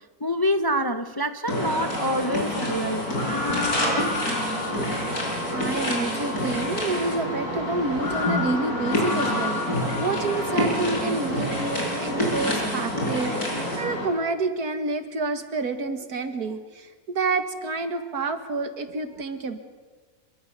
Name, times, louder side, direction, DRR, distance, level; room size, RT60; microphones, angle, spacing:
voice 1, 0.2-3.1, equal, 20° left, 0.6 m, -26 dB
sound 1, 1.5-14.1, left 1 dB, 75° left, 6.2 m, -27 dB
voice 2, 5.5-19.6, right 3 dB, 80° right, 2.3 m, -29 dB
26.0 x 23.5 x 6.8 m
omnidirectional pair, 1.6 m